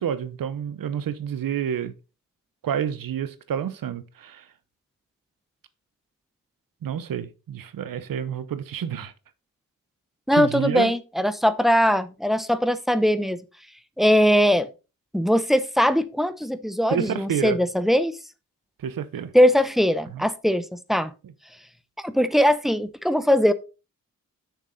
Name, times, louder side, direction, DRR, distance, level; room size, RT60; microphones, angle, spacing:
voice 1, 0.0-1.9 2.6-4.4 6.8-9.1 10.3-10.9 16.9-17.6 18.8-19.3 20.1-20.2, right 9 dB, 90° right, 0.9 m, -29 dB
voice 2, 10.3-13.4 14.0-14.7 15.1-18.1 19.3-21.1 22.0-23.5, equal, ahead, 0.7 m, -20 dB
6.7 x 6.4 x 4.0 m
cardioid pair, 85°, 33 cm